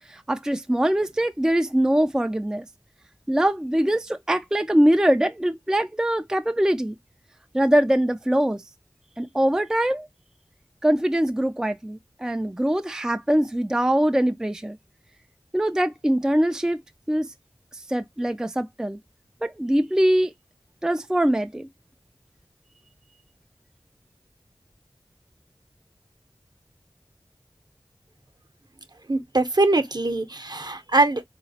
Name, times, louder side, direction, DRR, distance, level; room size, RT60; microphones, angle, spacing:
voice 1, 0.0-2.7 3.3-7.0 7.5-8.6 9.2-10.1 10.8-14.8 15.5-16.8 17.1-17.3 17.7-19.0 19.4-20.3 20.8-21.7, right 1 dB, 5° right, 0.3 m, -22 dB
voice 2, 29.1-31.2, right 2 dB, 50° right, 0.7 m, -22 dB
3.9 x 2.9 x 2.7 m
wide cardioid pair, 45°, 9 cm